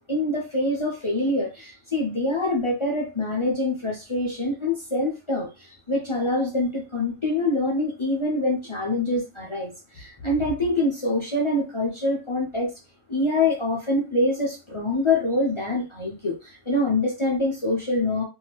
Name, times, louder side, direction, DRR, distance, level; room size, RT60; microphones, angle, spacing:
voice 1, 0.1-12.7 13.1-18.2, left 2 dB, 35° left, 0.5 m, -25 dB
2.7 x 2.3 x 3.1 m
omnidirectional pair, 1.2 m